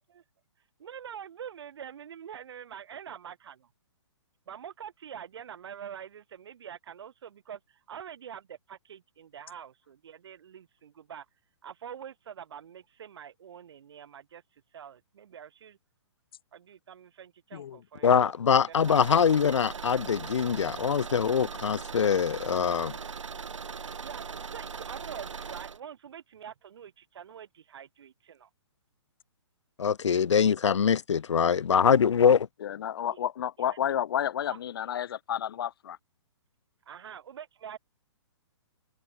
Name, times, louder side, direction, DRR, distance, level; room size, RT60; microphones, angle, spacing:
voice 1, 0.8-3.7 4.5-11.3 11.6-14.4 14.7-15.8 16.5-19.0 24.0-28.5 33.7-33.8 34.5-34.6 36.9-37.8, right 8 dB, 60° right, 4.0 m, -45 dB
voice 2, 18.0-22.9 29.8-32.5, left 7 dB, 75° left, 1.8 m, -23 dB
Car / Engine, 18.7-25.8, right 6 dB, 85° right, 4.5 m, -40 dB
voice 3, 32.6-36.0, left 10 dB, 50° left, 1.0 m, -31 dB
hypercardioid pair, 160°, 15 cm